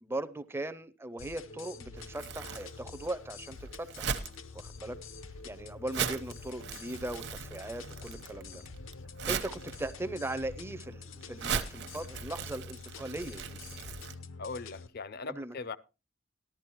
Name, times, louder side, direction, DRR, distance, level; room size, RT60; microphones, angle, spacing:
voice 1, 0.0-4.1 4.5-5.0 5.4-8.6 9.3-13.6 15.3-15.8, right 1 dB, 10° right, 0.5 m, -39 dB
sound 1, 1.2-14.9, left 4 dB, 80° left, 0.8 m, -47 dB
Crumpling crinkling, 2.0-14.1, right 6 dB, 60° right, 0.9 m, -39 dB
voice 2, 14.4-15.8, left 4 dB, 50° left, 0.5 m, -40 dB
14.5 x 12.0 x 3.0 m
head